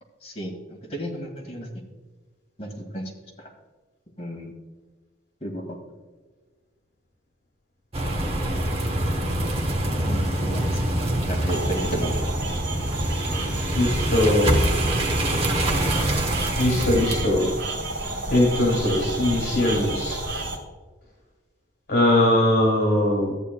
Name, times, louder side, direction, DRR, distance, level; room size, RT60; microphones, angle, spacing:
voice 1, 0.2-1.7 2.6-3.1 4.2-4.5 5.4-5.6 9.8-10.8 11.3-12.2, right 1 dB, 35° left, 0 dB, 2.0 m, -33 dB
sound 1, 7.9-17.3, right 1 dB, 30° right, 1.1 m, -25 dB
sound 2, 11.5-20.6, right 2 dB, 75° right, 2.7 m, -32 dB
voice 2, 13.7-14.5 16.6-17.5 18.3-20.2 21.9-23.3, left 1 dB, 65° left, -3 dB, 2.3 m, -21 dB
13.5 x 9.3 x 2.3 m, 1.4 s
head